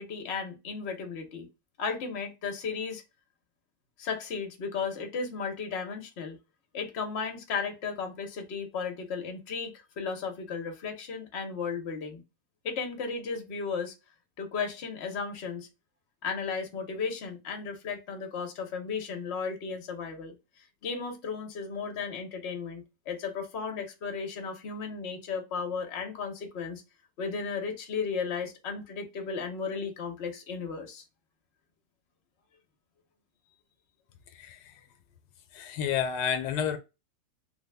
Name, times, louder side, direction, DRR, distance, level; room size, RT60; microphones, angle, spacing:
voice 1, 0.0-1.5 1.8-3.0 4.0-6.4 6.7-12.2 12.6-13.9 14.4-15.7 16.2-20.3 20.8-26.8 27.2-31.0, left 5 dB, 50° left, 0.9 m, -35 dB
voice 2, 34.3-34.7 35.5-36.8, left 8 dB, 85° left, 1.2 m, -30 dB
3.3 x 2.3 x 3.2 m
omnidirectional pair, 1.7 m